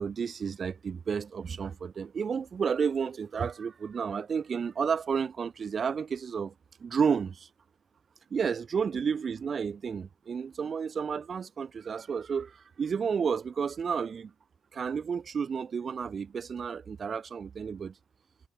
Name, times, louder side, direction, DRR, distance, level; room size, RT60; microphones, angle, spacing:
voice 1, 0.0-6.5 6.8-7.5 8.3-14.3 14.7-17.9, right 6 dB, 45° right, 4.3 m, -31 dB
cardioid pair, 90°, 0 cm